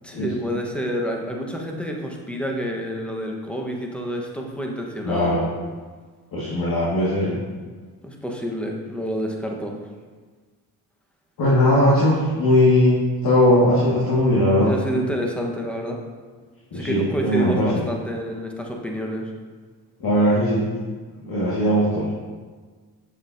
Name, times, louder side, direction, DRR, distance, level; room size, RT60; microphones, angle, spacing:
voice 1, 0.0-5.3 8.0-9.8 14.7-16.0 16.7-19.3, equal, 5° left, 0 dB, 1.2 m, -28 dB
voice 2, 5.0-5.5 6.3-7.3 11.4-14.7 16.7-17.7 20.0-20.6 21.2-22.1, left 1 dB, 55° left, -8 dB, 2.0 m, -19 dB
7.1 x 7.1 x 2.7 m, 1.5 s
cardioid pair, 70°, 42 cm